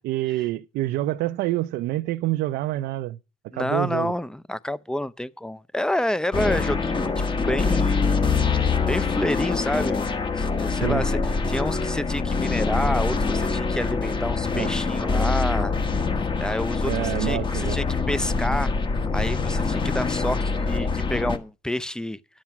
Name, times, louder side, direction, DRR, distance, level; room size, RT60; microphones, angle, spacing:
voice 1, 0.0-3.2 3.5-4.1 10.8-11.0 14.5-14.7 16.8-17.8, right 16 dB, 80° right, 0.5 m, -27 dB
voice 2, 3.5-7.1 7.5-10.1 10.4-11.2 11.5-15.7 16.4-18.7 19.1-22.2, left 1 dB, 5° left, 0.5 m, -28 dB
sound 1, 6.3-21.4, left 4 dB, 30° left, 1.3 m, -24 dB
10.5 x 7.4 x 5.8 m
cardioid pair, 110°, 17 cm